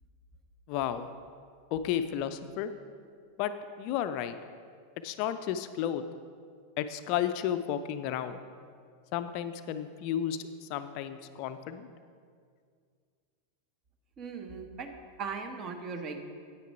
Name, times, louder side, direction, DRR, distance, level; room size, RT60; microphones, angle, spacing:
voice 1, 0.7-1.1 1.7-2.7 3.4-3.5 3.8-4.3 5.0-6.0 6.8-8.4 9.1-11.9, left 10 dB, 45° left, 11 dB, 0.4 m, -32 dB
voice 2, 14.2-14.9 15.2-16.2, right 5 dB, 30° right, 6 dB, 1.0 m, -38 dB
9.2 x 9.0 x 4.7 m, 2.1 s
figure-of-eight pair, 90°, 0 cm